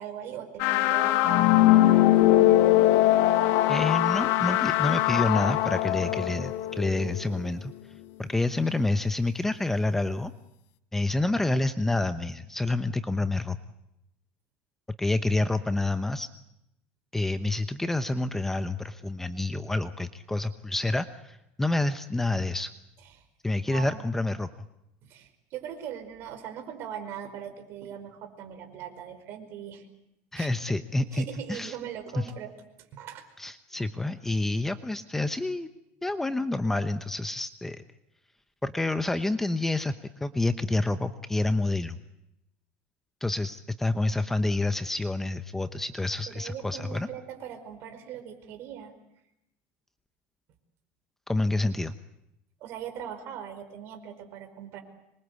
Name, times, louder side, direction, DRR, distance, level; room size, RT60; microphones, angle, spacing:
voice 1, 0.0-2.7 23.1-23.2 23.7-24.2 25.0-29.9 30.3-30.5 31.1-32.5 32.9-33.2 33.7-33.9 46.3-48.9 52.6-54.8, right 9 dB, 50° right, 7 dB, 5.0 m, -40 dB
sound 1, 0.6-7.4, left 15 dB, 60° left, 1.2 m, -22 dB
voice 2, 3.7-7.7 8.2-10.3 10.9-13.6 15.0-16.3 17.1-22.7 23.4-24.5 30.3-31.8 32.1-32.3 33.4-35.7 36.0-37.8 38.6-39.9 40.2-42.0 43.2-47.1 51.3-51.9, left 2 dB, 5° left, 10 dB, 0.9 m, -28 dB
26.0 x 23.0 x 8.3 m, 0.85 s
supercardioid pair, 140°, 5 cm